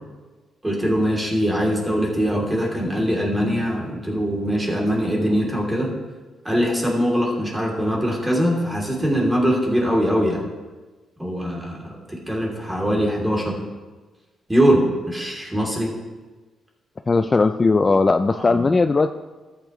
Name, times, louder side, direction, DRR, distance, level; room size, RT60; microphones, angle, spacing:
voice 1, 0.6-6.0 6.4-10.4 11.2-13.6 14.5-15.9 18.3-18.7, equal, 15° right, -1 dB, 3.0 m, -22 dB
voice 2, 17.1-19.1, left 3 dB, 30° left, 9 dB, 0.4 m, -18 dB
13.5 x 9.0 x 3.1 m, 1.3 s
cardioid pair, 75°, 0 cm